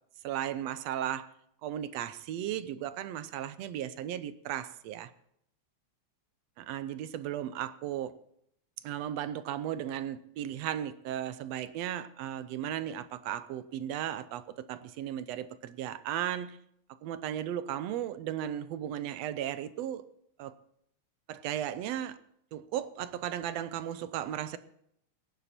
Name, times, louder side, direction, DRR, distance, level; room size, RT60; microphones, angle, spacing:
voice 1, 0.2-1.3 1.6-5.1 6.6-8.1 8.8-16.6 17.0-20.0 20.4-20.5 21.3-22.2 22.5-24.6, right 11 dB, 75° right, 1.7 m, -35 dB
16.5 x 11.0 x 4.4 m
omnidirectional pair, 3.3 m